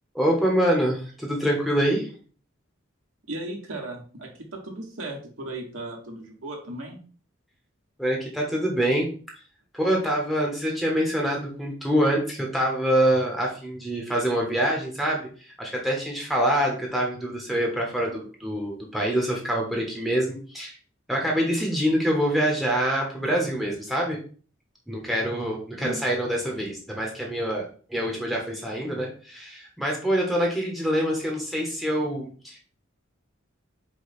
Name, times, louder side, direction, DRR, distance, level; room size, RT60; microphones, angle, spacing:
voice 1, 0.1-2.2 8.0-9.1 9.7-20.7 21.1-24.2 24.9-32.6, equal, ahead, -1 dB, 0.8 m, -25 dB
voice 2, 3.3-7.0 25.8-26.0, right 1 dB, 85° right, 0 dB, 1.3 m, -36 dB
4.9 x 2.2 x 4.1 m, 0.42 s
head